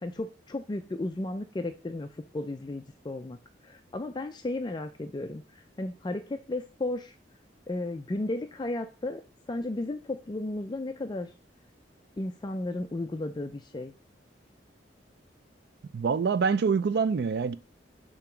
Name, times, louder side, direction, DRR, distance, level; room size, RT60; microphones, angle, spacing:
voice 1, 0.0-2.1 2.3-3.4 3.6-7.1 7.7-9.2 9.5-11.3 12.2-13.9, left 2 dB, 25° left, 0.4 m, -34 dB
voice 2, 15.9-17.6, right 5 dB, 60° right, 0.4 m, -25 dB
7.0 x 2.9 x 5.8 m
head